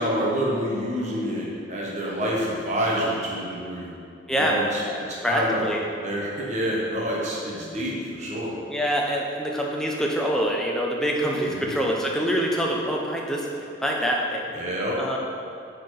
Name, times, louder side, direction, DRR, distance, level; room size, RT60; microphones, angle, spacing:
voice 1, 0.0-3.9 4.3-5.7 6.0-8.5 11.4-11.7 14.5-15.0, equal, 35° right, -4 dB, 1.5 m, -28 dB
voice 2, 4.3-4.6 4.8-5.8 8.7-14.4 15.0-15.2, equal, 5° left, -2 dB, 0.7 m, -25 dB
8.6 x 4.4 x 5.0 m, 2.5 s
head